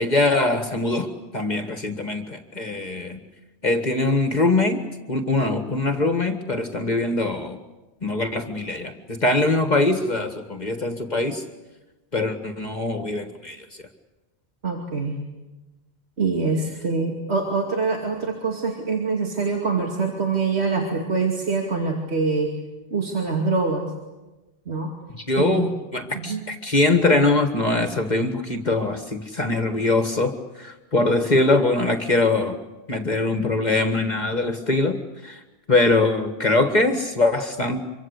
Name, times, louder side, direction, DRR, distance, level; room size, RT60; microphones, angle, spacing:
voice 1, 0.0-3.2 3.6-4.8 5.1-7.6 8.0-11.4 12.1-13.7 25.3-32.6 32.9-35.4 35.7-37.8, left 2 dB, 40° left, 7 dB, 1.9 m, -22 dB
voice 2, 14.6-15.2 16.2-22.5 22.9-23.9 24.7-24.9 25.4-25.7 26.1-26.4, right 4 dB, 70° right, 0 dB, 2.9 m, -24 dB
25.5 x 24.5 x 8.2 m, 1.1 s
omnidirectional pair, 1.1 m